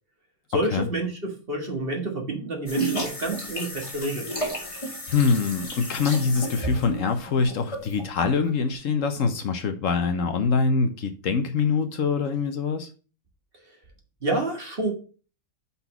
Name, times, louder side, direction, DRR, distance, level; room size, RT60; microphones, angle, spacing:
voice 1, 0.5-4.3 14.2-14.9, right 1 dB, 40° right, 1.7 m, -28 dB
sound 1, 2.7-8.5, right 1 dB, 20° left, 1.6 m, -32 dB
voice 2, 5.1-12.9, left 5 dB, 65° left, 1.1 m, -24 dB
5.5 x 4.2 x 5.9 m
omnidirectional pair, 1.5 m